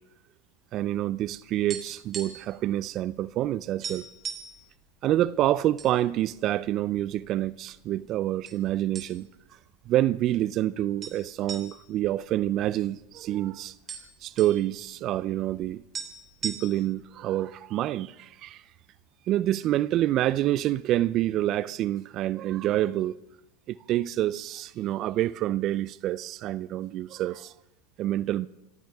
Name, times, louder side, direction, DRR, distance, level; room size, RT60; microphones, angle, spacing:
voice 1, 0.7-4.1 5.0-9.3 9.9-13.7 14.2-15.8 16.4-18.6 19.3-23.2 23.7-27.5 28.0-28.5, right 13 dB, 45° right, 0.5 m, -27 dB
sound 1, 1.7-2.6 2.8-3.0 3.4-3.5 3.8-4.6 5.3-5.9 6.3-6.4 7.1-7.8 8.5-8.6 9.0-9.5 9.8-9.9 11.0-13.1 13.4-13.5 13.7-14.6 15.6-15.7 15.9-17.0, right 6 dB, 30° right, 3.2 m, -38 dB
26.0 x 15.0 x 3.6 m
hypercardioid pair, 95°, 0 cm